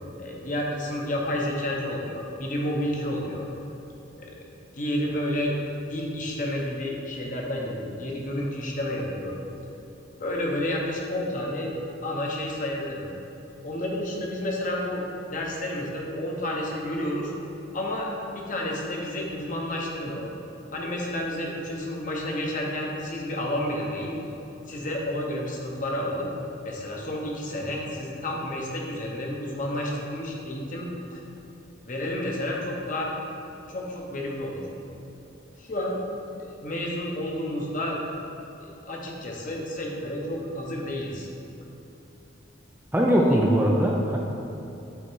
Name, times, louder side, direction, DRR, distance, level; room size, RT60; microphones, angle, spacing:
voice 1, 0.2-3.5 4.1-4.4 4.7-5.5 5.9-9.4 10.2-11.7 12.0-13.1 13.6-15.1 15.3-17.3 17.7-20.4 20.7-24.1 24.7-26.3 26.6-31.2 31.9-33.1 33.7-34.6 35.6-36.0 36.6-38.0 38.6-41.3 43.1-43.2, left 1 dB, 40° left, -1 dB, 1.0 m, -30 dB
voice 2, 42.9-44.2, equal, 10° right, -1 dB, 0.4 m, -21 dB
8.3 x 3.9 x 4.6 m, 2.9 s
head